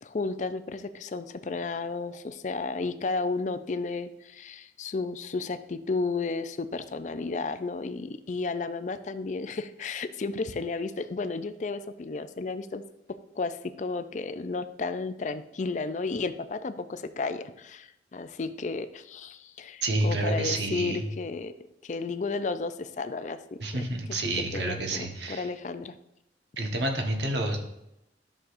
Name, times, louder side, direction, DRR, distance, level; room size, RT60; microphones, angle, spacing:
voice 1, 0.0-12.8 13.4-21.5 21.8-23.4 24.5-25.9, left 3 dB, 45° left, 11 dB, 0.4 m, -33 dB
voice 2, 19.8-21.0 23.6-25.5 26.6-27.6, right 2 dB, 80° right, 2 dB, 1.3 m, -29 dB
11.0 x 6.3 x 2.6 m, 0.86 s
head